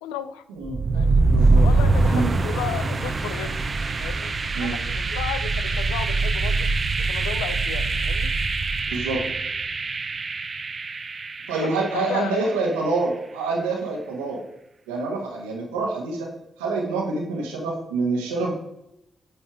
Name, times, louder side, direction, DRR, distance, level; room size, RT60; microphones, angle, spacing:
voice 1, 0.0-0.4 0.9-1.2 1.6-3.6 4.0-4.3 4.6-6.7 7.1-8.3 11.6-12.4, left 10 dB, 90° left, 13 dB, 0.4 m, -34 dB
sound 1, 0.6-12.5, right 3 dB, 45° right, 0.9 m, -23 dB
voice 2, 1.3-1.6 2.1-2.3 4.5-4.8 8.9-9.2 11.5-14.4 14.9-16.3 16.6-18.5, right 3 dB, 90° right, 0 dB, 1.6 m, -26 dB
9.6 x 4.4 x 5.0 m, 0.83 s
hypercardioid pair, 40°, 0 cm